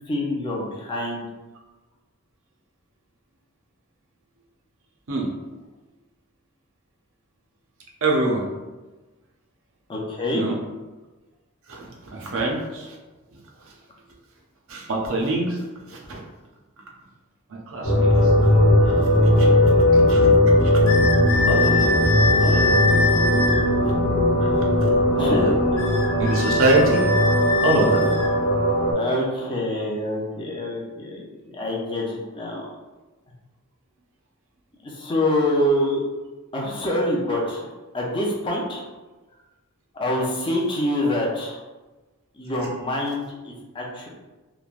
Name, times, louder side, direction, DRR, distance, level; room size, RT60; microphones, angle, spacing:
voice 1, 0.1-1.3 9.9-10.4 25.2-25.5 29.0-31.3 31.5-32.7 34.8-36.0 36.5-37.7 37.9-38.8 39.9-41.6 42.4-44.1, left 1 dB, 20° left, -3 dB, 0.5 m, -26 dB
voice 2, 8.0-8.5 10.3-10.6 11.7-13.0 14.7-16.2 17.5-18.5 18.8-20.3 20.6-20.7 21.5-21.9 22.4-22.8 24.4-24.5 25.2-25.5 26.2-27.0 27.6-28.0, right 2 dB, 60° right, -1 dB, 0.6 m, -25 dB
sound 1, 17.8-28.9, left 1 dB, 90° left, 0.9 m, -18 dB
sound 2, 20.9-23.6 25.8-28.3, left 3 dB, 60° left, 0.7 m, -24 dB
3.1 x 2.1 x 2.4 m, 1.2 s
head